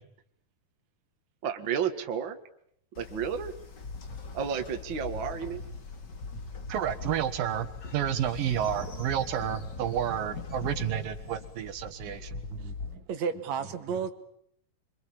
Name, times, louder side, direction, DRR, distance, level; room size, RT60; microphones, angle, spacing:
voice 1, 1.4-2.4 3.0-3.5 4.3-5.6 12.5-13.0, right 7 dB, 40° right, 6 dB, 2.2 m, -32 dB
Train, 2.9-12.9, left 4 dB, 35° left, 2.3 m, -40 dB
voice 2, 6.7-12.4, right 10 dB, 80° right, 8 dB, 3.3 m, -30 dB
voice 3, 13.1-14.1, right 6 dB, 55° right, 8 dB, 2.9 m, -31 dB
27.0 x 25.0 x 8.7 m, 0.70 s
omnidirectional pair, 3.9 m